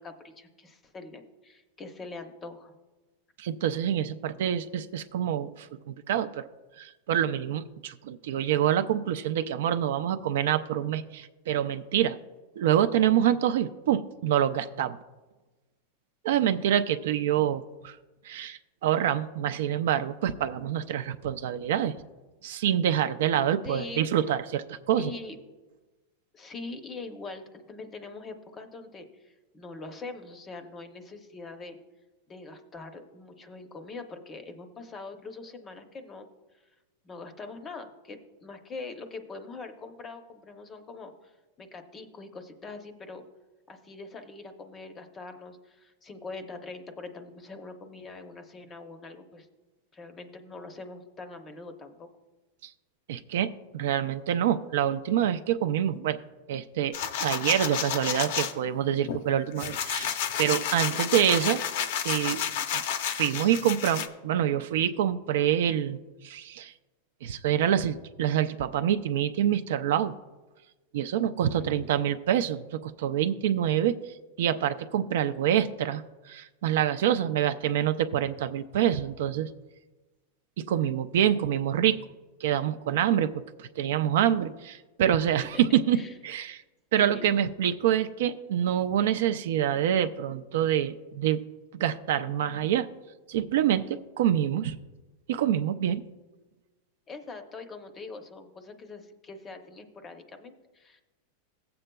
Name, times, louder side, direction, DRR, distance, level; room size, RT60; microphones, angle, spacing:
voice 1, 0.0-2.7 23.6-24.1 24.9-25.4 26.3-31.8 32.3-36.2 37.0-41.3 41.6-43.2 43.7-49.5 49.9-52.1 60.9-61.1 71.6-71.9 85.4-85.6 85.9-86.1 86.9-87.4 97.1-101.0, left 3 dB, 15° left, 7 dB, 0.7 m, -43 dB
voice 2, 3.4-6.5 6.8-12.2 12.6-15.0 16.2-18.0 18.2-21.9 22.4-25.1 52.6-52.7 53.1-56.2 56.5-61.6 62.0-62.4 62.7-62.8 63.1-66.0 66.2-66.7 67.2-70.1 70.9-74.0 74.4-76.0 76.3-79.5 80.6-82.0 82.4-86.6 86.9-91.4 91.7-92.9 93.3-94.8 95.3-96.0, right 10 dB, 65° right, 11 dB, 0.4 m, -26 dB
sound 1, 56.9-58.5 59.1-64.1, left 9 dB, 60° left, 0.6 m, -31 dB
16.5 x 7.7 x 2.3 m, 1.2 s
supercardioid pair, 170°, 0 cm